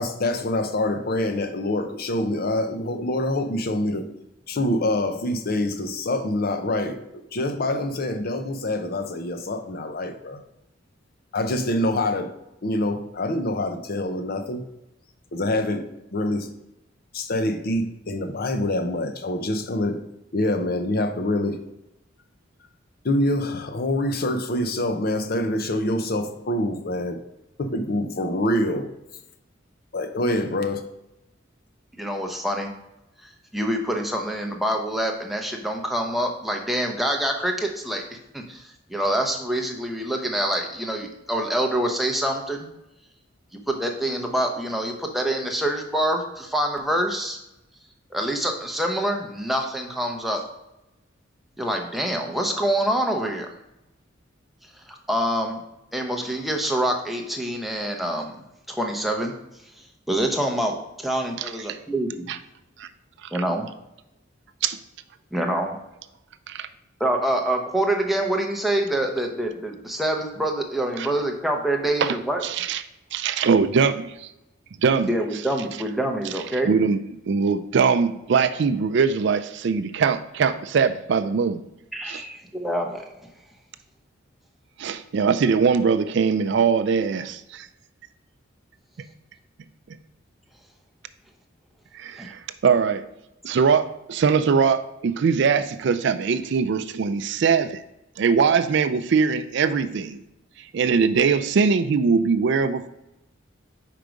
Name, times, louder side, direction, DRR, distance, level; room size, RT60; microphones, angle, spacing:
voice 1, 0.0-4.1 4.5-10.4 11.3-12.3 12.6-14.6 15.3-16.5 17.1-20.0 20.3-21.6 23.0-27.2 27.6-28.9 29.9-30.8, left 1 dB, 50° left, 8 dB, 0.6 m, -25 dB
voice 2, 32.0-32.7 33.5-38.0 38.3-42.7 43.7-47.4 48.1-50.4 51.6-53.5 54.9-55.6 55.9-58.4 58.7-59.3 60.1-62.3 63.3-63.7 65.3-65.8 67.0-72.4 75.1-76.7 81.9-83.1 92.2-92.3, right 1 dB, ahead, 1 dB, 0.7 m, -26 dB
voice 3, 61.4-61.8 62.3-62.4 62.8-62.9 63.2-63.3 64.6-64.8 66.5-66.7 71.0-71.1 72.0-72.2 72.4-72.8 73.1-74.3 74.8-75.1 76.7-81.6 82.1-82.2 84.8-87.7 91.9-93.1 93.4-97.8 98.2-100.2 100.6-102.9, right 5 dB, 65° right, 12 dB, 0.4 m, -22 dB
5.0 x 4.6 x 5.1 m, 0.89 s
head